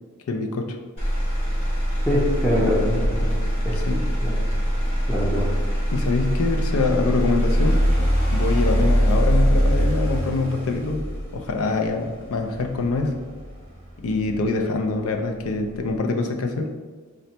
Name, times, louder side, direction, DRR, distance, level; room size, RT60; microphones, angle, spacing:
voice 1, 0.3-0.8 3.8-4.1 5.9-7.9 8.3-11.1 11.3-13.2 14.0-16.7, left 3 dB, 65° left, 4 dB, 0.4 m, -24 dB
Motor vehicle (road), 1.0-15.0 15.4-16.0, equal, 30° left, 1.3 m, -23 dB
voice 2, 2.0-3.8 4.2-4.5 5.1-5.5, left 1 dB, 5° left, -9 dB, 0.6 m, -24 dB
3.8 x 2.1 x 4.3 m, 1.4 s
head